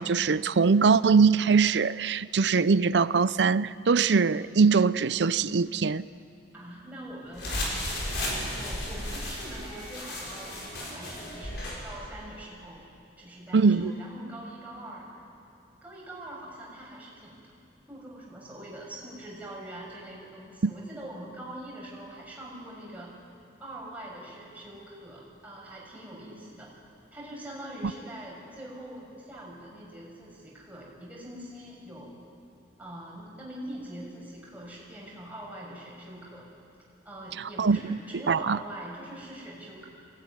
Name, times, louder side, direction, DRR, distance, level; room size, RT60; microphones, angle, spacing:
voice 1, 0.0-6.0 13.5-13.9 20.6-20.7 37.6-38.0 38.3-38.6, right 5 dB, 70° right, 0.5 m, -22 dB
voice 2, 6.5-7.6 8.0-8.2 8.5-12.8 13.2-15.2 15.8-17.4 17.9-23.1 23.6-26.7 27.1-32.2 32.8-36.4 37.0-39.9, right 1 dB, 10° right, 6.0 m, -43 dB
sound 1, 7.3-11.8, left 1 dB, 70° left, 6.0 m, -34 dB
23.5 x 17.5 x 9.8 m
head